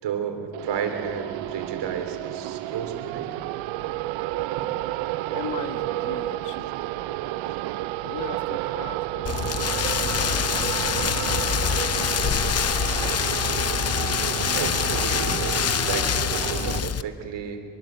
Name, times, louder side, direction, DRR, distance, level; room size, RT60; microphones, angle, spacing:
voice 1, 0.0-3.4 14.4-17.6, right 7 dB, 65° right, 6 dB, 3.2 m, -32 dB
sound 1, 0.5-16.8, right 16 dB, 85° right, 0.7 m, -31 dB
voice 2, 5.3-6.7 8.0-13.1, left 7 dB, 60° left, 8 dB, 1.8 m, -40 dB
Rain, 9.3-17.0, left 8 dB, 35° left, 0.7 m, -25 dB
24.5 x 23.5 x 7.9 m, 2.6 s
supercardioid pair, 80°, 45 cm